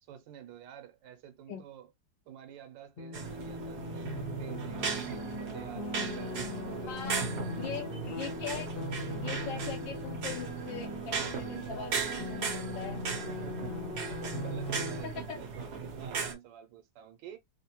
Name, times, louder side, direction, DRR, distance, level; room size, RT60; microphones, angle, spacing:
voice 1, 0.0-1.9 2.3-7.9 8.7-8.8 13.3-17.4, right 9 dB, 90° right, 1.3 m, -50 dB
sound 1, 3.0-15.0, left 1 dB, 45° left, 0.8 m, -39 dB
sound 2, 3.1-16.3, right 5 dB, 65° right, 1.3 m, -38 dB
voice 2, 6.9-7.2 7.6-8.7 9.1-13.0 15.0-15.4, left 7 dB, 80° left, 1.3 m, -41 dB
3.6 x 2.1 x 2.8 m
omnidirectional pair, 2.0 m